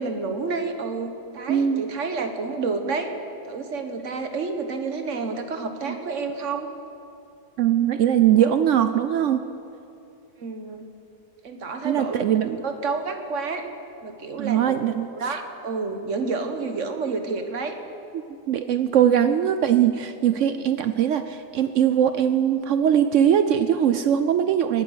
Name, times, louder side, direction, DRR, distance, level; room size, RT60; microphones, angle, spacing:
voice 1, 0.0-3.1 3.5-6.7 10.4-10.9 11.4-13.7 14.0-14.8 15.1-17.8, right 4 dB, 50° right, 6 dB, 1.3 m, -29 dB
voice 2, 1.5-1.9 5.9-6.0 7.6-9.4 11.8-12.6 14.4-15.4 18.5-24.8, right 9 dB, 75° right, 10 dB, 0.7 m, -21 dB
19.5 x 9.0 x 6.4 m, 2.6 s
omnidirectional pair, 1.8 m